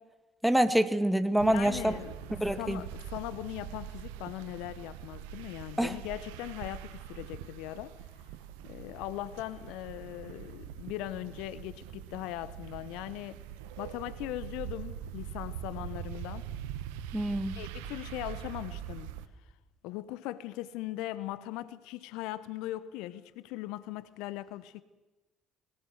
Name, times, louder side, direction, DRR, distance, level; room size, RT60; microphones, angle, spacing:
voice 1, 0.4-1.9 2.4-2.8 5.8-5.9 17.1-17.6, right 1 dB, 5° right, 2.0 m, -26 dB
voice 2, 1.4-7.9 8.6-13.4 13.8-16.5 17.5-19.2 19.8-24.8, left 15 dB, 65° left, 0.8 m, -39 dB
sound 1, 1.4-19.3, right 10 dB, 70° right, 1.1 m, -43 dB
21.0 x 18.5 x 8.0 m
figure-of-eight pair, 50°, 0 cm